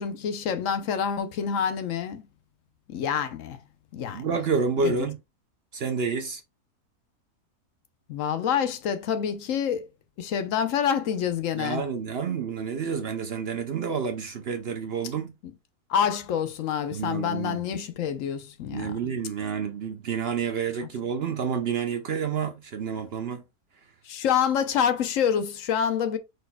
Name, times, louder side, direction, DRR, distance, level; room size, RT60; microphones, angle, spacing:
voice 1, 0.0-2.2 2.9-3.6 3.9-4.3 4.8-5.0 8.1-9.9 10.2-11.8 15.9-19.0 24.1-26.2, left 8 dB, 65° left, 1.0 m, -27 dB
voice 2, 4.1-5.2 5.7-6.4 11.6-15.3 16.9-17.6 18.7-23.4, right 6 dB, 60° right, 0.6 m, -29 dB
5.0 x 4.3 x 2.2 m
omnidirectional pair, 1.6 m